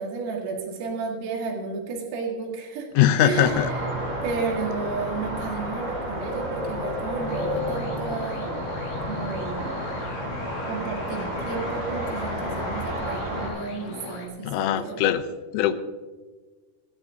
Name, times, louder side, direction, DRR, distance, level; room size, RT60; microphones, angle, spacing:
voice 1, 0.0-3.9 4.2-8.6 9.1-9.8 10.7-15.1, right 4 dB, 90° right, 0 dB, 4.7 m, -32 dB
voice 2, 3.0-3.7 14.4-15.2 15.5-15.7, left 10 dB, 80° left, 10 dB, 3.2 m, -21 dB
sound 1, 3.3-13.5, equal, 15° right, 5.0 m, -31 dB
sound 2, 7.3-14.3, left 4 dB, 50° left, 2.3 m, -39 dB
29.0 x 10.0 x 2.8 m, 1.3 s
omnidirectional pair, 5.8 m